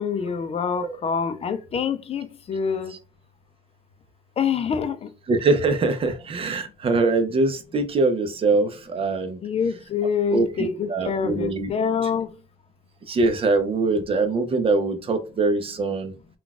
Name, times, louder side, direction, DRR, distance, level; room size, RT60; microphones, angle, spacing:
voice 1, 0.0-2.9 4.4-5.1 9.4-12.3, left 6 dB, 35° left, 0.5 m, -26 dB
voice 2, 5.3-9.4 10.3-11.7 12.0-12.1 13.1-16.1, right 3 dB, 35° right, 0.7 m, -23 dB
3.7 x 2.4 x 2.3 m
cardioid pair, 110°, 17 cm